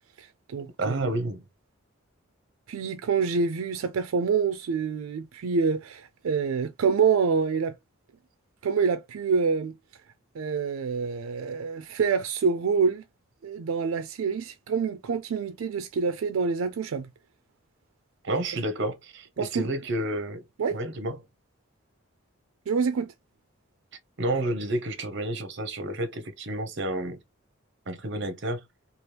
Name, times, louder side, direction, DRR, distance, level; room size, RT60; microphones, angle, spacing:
voice 1, 0.2-1.1 2.7-7.7 8.6-9.8 10.3-13.0 13.4-17.1 19.4-19.7 20.6-20.8 22.7-23.1, right 5 dB, 85° right, 0.4 m, -26 dB
voice 2, 0.8-1.4 18.2-20.4 20.7-21.2 24.2-27.2 27.9-28.6, right 1 dB, 55° right, 0.7 m, -30 dB
2.9 x 2.4 x 3.2 m
head